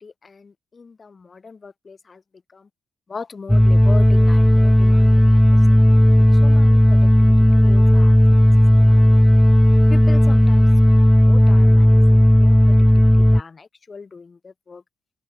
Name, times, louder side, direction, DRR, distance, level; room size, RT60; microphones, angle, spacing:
voice 1, 0.0-2.2 2.5-2.7 3.1-8.5 8.8-9.4 9.9-14.8, left 4 dB, 35° left, 5.9 m, -40 dB
sound 1, 3.5-13.4, equal, 5° left, 0.6 m, -13 dB
open air
cardioid pair, 105°, 0 cm